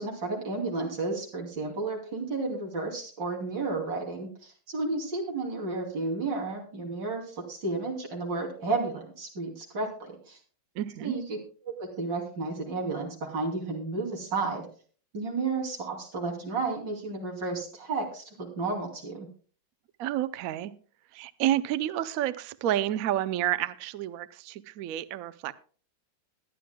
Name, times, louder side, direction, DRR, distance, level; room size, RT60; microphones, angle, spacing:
voice 1, 0.0-10.4 11.0-11.4 11.6-14.7 15.1-19.3, right 3 dB, 60° right, 0 dB, 3.5 m, -32 dB
voice 2, 10.8-11.1 20.0-20.7 21.1-25.5, right 12 dB, 85° right, 15 dB, 0.7 m, -30 dB
21.5 x 10.5 x 2.2 m, 0.40 s
omnidirectional pair, 2.2 m